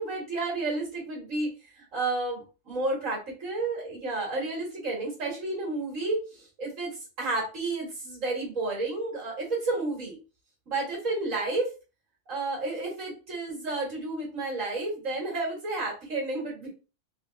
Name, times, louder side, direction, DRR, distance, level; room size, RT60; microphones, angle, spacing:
voice 1, 0.0-10.2 10.7-11.7 12.3-16.7, right 2 dB, 75° right, -2 dB, 2.1 m, -31 dB
4.4 x 3.2 x 2.6 m, 0.32 s
omnidirectional pair, 1.4 m